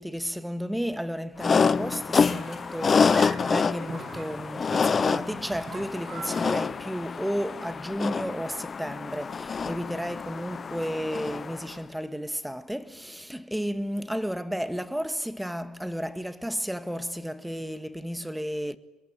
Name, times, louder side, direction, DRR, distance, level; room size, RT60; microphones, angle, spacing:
voice 1, 0.0-18.8, equal, 5° right, 1.8 m, -33 dB
sound 1, 1.4-11.7, left 5 dB, 30° left, 0.8 m, -27 dB
sound 2, 1.8-6.6, right 4 dB, 40° right, 4.2 m, -43 dB
27.5 x 22.5 x 9.0 m
supercardioid pair, 100°, 0 cm